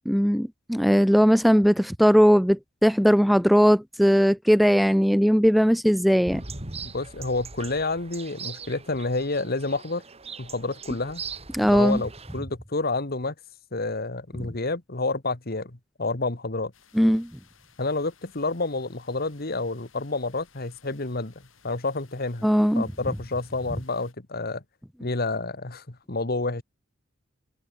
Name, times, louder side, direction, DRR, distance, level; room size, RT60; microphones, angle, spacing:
voice 1, 0.1-6.4 11.5-12.0 16.9-17.3 22.4-22.8, equal, ahead, 0.4 m, -19 dB
sound 1, 6.3-12.4, right 4 dB, 30° right, 2.9 m, -40 dB
voice 2, 6.8-10.0 10.4-11.2 11.6-13.3 13.7-16.7 17.8-21.3 21.6-22.5 22.8-24.6 25.0-26.6, left 3 dB, 50° left, 1.9 m, -29 dB
sound 2, 16.7-24.1, left 6 dB, 85° left, 7.4 m, -59 dB
head